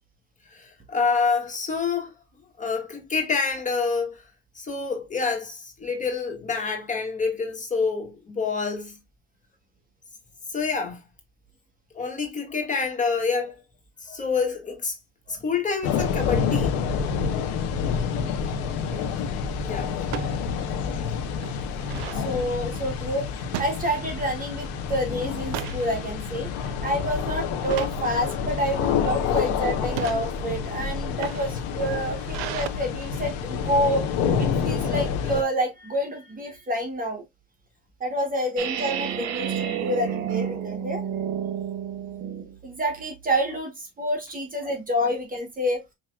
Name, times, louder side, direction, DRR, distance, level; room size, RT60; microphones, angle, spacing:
voice 1, 0.5-2.1 2.6-4.2 4.6-9.0 10.5-11.0 11.9-13.6 14.0-15.0 15.3-17.0 19.6-20.0 34.8-34.9, left 5 dB, 25° left, 1.8 m, -27 dB
sound 1, 15.8-35.4, left 6 dB, 75° left, 1.1 m, -28 dB
sound 2, 18.3-18.6 20.0-20.4 20.8-20.9 21.2-22.2 23.5-24.3 24.7-24.9 25.3-25.9 26.4-26.7 27.6-28.0 28.8-29.2 29.8-30.2 31.0-32.7, right 13 dB, 90° right, 0.5 m, -35 dB
voice 2, 21.9-26.5 26.8-34.1 34.4-37.2 38.0-41.0 42.6-45.8, equal, 25° right, 1.2 m, -28 dB
sound 3, 38.6-42.6, right 9 dB, 65° right, 0.9 m, -30 dB
6.2 x 2.9 x 2.3 m
supercardioid pair, 95°, 30 cm